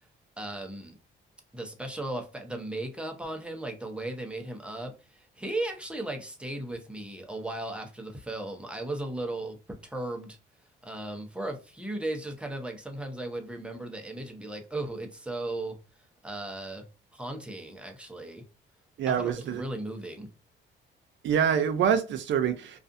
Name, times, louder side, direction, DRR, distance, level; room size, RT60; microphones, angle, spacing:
voice 1, 0.4-1.0 1.5-9.6 9.8-10.4 10.8-15.8 16.2-16.8 17.1-18.4 19.1-20.3, right 1 dB, 5° right, 0.6 m, -36 dB
voice 2, 19.0-19.6 21.2-22.8, right 8 dB, 70° right, 0.5 m, -26 dB
2.4 x 2.4 x 2.5 m
cardioid pair, 90°, 20 cm